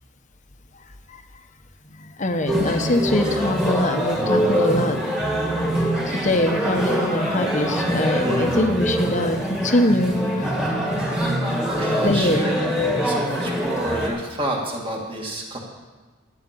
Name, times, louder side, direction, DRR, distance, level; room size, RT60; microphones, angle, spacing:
voice 1, 2.0-5.0 6.1-10.5 12.0-12.5, left 1 dB, 35° left, 6 dB, 1.0 m, -23 dB
sound 1, 2.5-14.1, equal, 5° right, 2.0 m, -24 dB
voice 2, 8.2-8.5 11.8-12.5 13.0-15.6, right 1 dB, 25° right, -1 dB, 2.3 m, -29 dB
12.0 x 10.5 x 6.9 m, 1.3 s
head